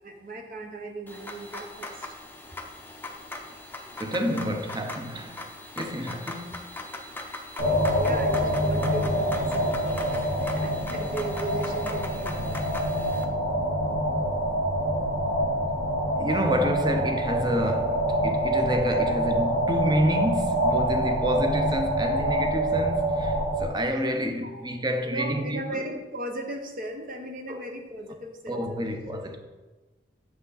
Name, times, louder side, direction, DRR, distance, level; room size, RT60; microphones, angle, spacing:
voice 1, 0.0-2.1 8.0-12.3 21.2-21.3 24.4-24.6 25.0-29.2, right 2 dB, 50° right, 1.0 m, -37 dB
sound 1, 1.1-13.2, left 2 dB, 10° left, 0.6 m, -40 dB
voice 2, 4.0-5.4 5.8-6.6 16.2-25.9 27.5-27.6 28.5-29.4, equal, 25° right, 0.7 m, -28 dB
sound 2, 7.6-23.7, right 1 dB, 85° right, 2.6 m, -26 dB
7.2 x 6.0 x 4.0 m
head